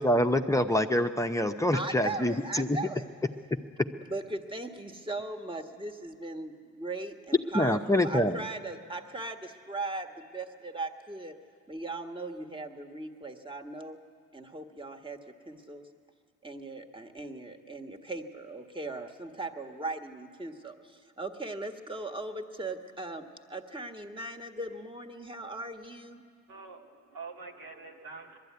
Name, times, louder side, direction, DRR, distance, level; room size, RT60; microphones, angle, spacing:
voice 1, 0.0-2.8 7.5-8.4, left 1 dB, 10° left, 6 dB, 0.8 m, -26 dB
voice 2, 1.7-3.1 3.9-11.4 11.7-14.0 14.3-15.9 16.4-26.2, right 2 dB, 15° right, 5 dB, 1.6 m, -39 dB
voice 3, 26.5-28.4, right 4 dB, 85° right, 0 dB, 2.2 m, -45 dB
21.0 x 13.0 x 9.5 m, 2.1 s
supercardioid pair, 60°, 36 cm